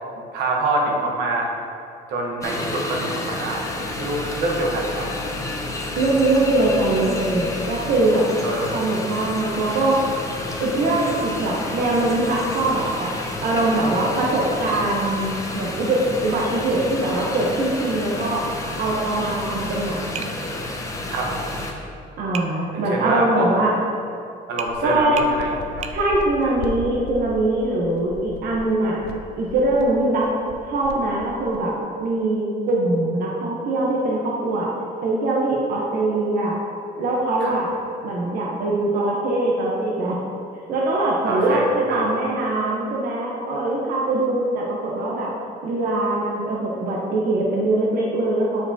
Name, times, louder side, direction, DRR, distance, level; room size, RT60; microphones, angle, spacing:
voice 1, 0.3-1.5 2.1-3.6 4.0-5.5 5.9-6.0 8.4-8.8 21.1-21.3 22.7-23.5 24.5-25.9 26.4-26.6 37.4-37.5 41.2-42.1, right 2 dB, 85° right, 0 dB, 1.1 m, -26 dB
sound 1, 2.4-21.7, left 2 dB, 20° left, 0.7 m, -30 dB
voice 2, 5.9-8.3 8.7-10.0 10.6-13.1 13.4-18.4 18.8-20.3 22.2-23.7 24.8-25.1 25.9-29.0 29.4-30.3 30.6-31.7 32.0-34.7 35.0-36.6 37.0-37.7 38.0-40.2 40.7-45.3 45.6-48.7, right 2 dB, 60° right, -4 dB, 0.9 m, -22 dB
Tap, 20.1-20.4 22.3-22.5 24.6-24.8 25.2-25.3 25.8-26.0, right 7 dB, 40° right, 0.4 m, -32 dB
sound 2, 24.7-31.8, left 4 dB, 75° left, 0.5 m, -38 dB
7.9 x 4.7 x 2.8 m, 2.5 s
cardioid pair, 110°, 17 cm